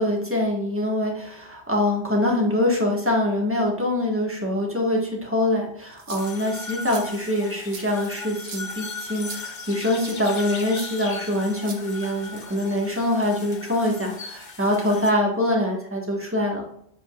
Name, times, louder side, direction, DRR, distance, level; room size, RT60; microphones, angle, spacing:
voice 1, 0.0-16.7, left 1 dB, 10° right, -1 dB, 1.7 m, -24 dB
sound 1, 5.9-6.4 6.9-7.0 7.7-7.8 8.4-8.7 9.2-9.4 10.0-10.2 10.7-10.9 11.6-12.2, right 5 dB, 80° right, 1.3 m, -39 dB
sound 2, 6.2-15.1, left 4 dB, 45° left, 0.9 m, -38 dB
7.5 x 5.4 x 2.5 m, 0.70 s
omnidirectional pair, 1.2 m